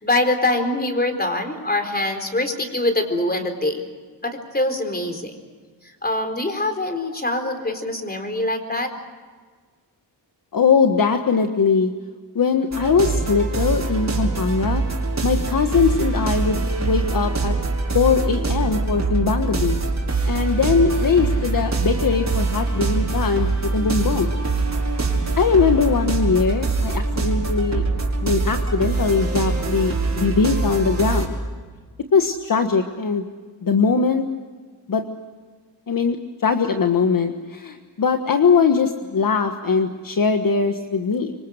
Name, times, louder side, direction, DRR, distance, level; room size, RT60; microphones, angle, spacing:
voice 1, 0.0-3.8 4.2-5.4 6.0-8.9, left 2 dB, 20° left, 6 dB, 4.3 m, -24 dB
voice 2, 10.5-11.9 12.3-14.8 15.2-17.5 17.9-19.8 20.2-24.3 25.4-27.8 28.2-31.3 32.1-33.2 33.6-34.2 34.9-35.1 35.9-41.3, left 5 dB, 50° left, 6 dB, 1.5 m, -21 dB
sound 1, 12.7-31.3, right 3 dB, 40° right, 5.2 m, -23 dB
27.0 x 25.0 x 6.5 m, 1.5 s
wide cardioid pair, 105°, 41 cm